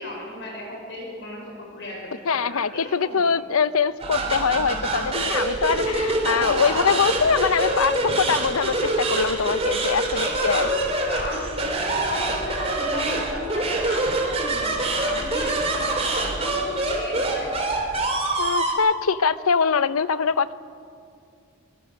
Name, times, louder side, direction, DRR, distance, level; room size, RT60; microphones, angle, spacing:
voice 1, 0.0-3.3 6.6-7.1 7.6-8.1 10.1-17.5, left 1 dB, 55° left, 0 dB, 5.2 m, -35 dB
voice 2, 2.3-10.7 18.4-20.5, left 5 dB, 85° left, 15 dB, 0.7 m, -23 dB
sound 1, 4.0-18.7, right 2 dB, 30° right, 3.2 m, -25 dB
23.5 x 20.5 x 6.6 m, 2.4 s
head